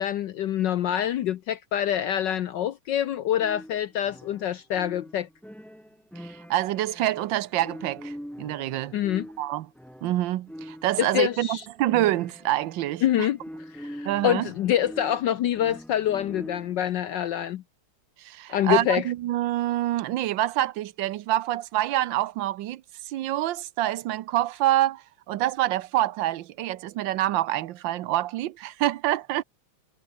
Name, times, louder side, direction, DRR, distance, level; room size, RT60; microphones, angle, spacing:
voice 1, 0.0-5.3 8.9-9.3 11.0-11.6 13.0-13.4 13.7-17.6 18.5-19.1, left 11 dB, 65° left, 1.3 m, -26 dB
sound 1, 3.3-16.9, equal, ahead, 6.4 m, -43 dB
voice 2, 6.2-9.0 9.4-9.7 10.0-13.3 14.0-14.5 18.2-29.4, right 14 dB, 70° right, 1.4 m, -26 dB
omnidirectional pair, 2.3 m